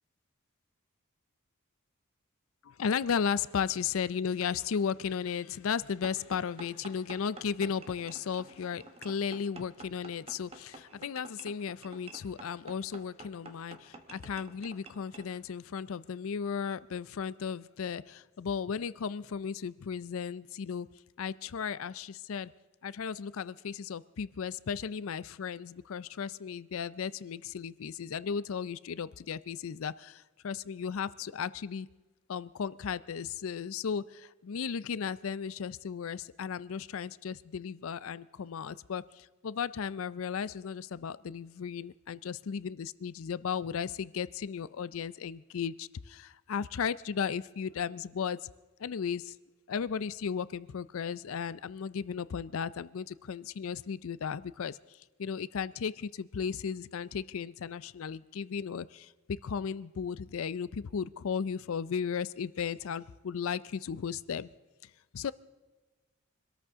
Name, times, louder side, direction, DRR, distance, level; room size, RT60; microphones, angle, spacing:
voice 1, 2.6-20.9 21.2-22.5 22.8-31.9 32.3-48.5 48.8-49.4 49.7-64.5 64.8-65.3, left 6 dB, 70° left, 18 dB, 0.4 m, -35 dB
sound 1, 6.0-15.3, right 2 dB, 25° right, 1.1 m, -50 dB
24.5 x 13.5 x 3.6 m, 1.2 s
head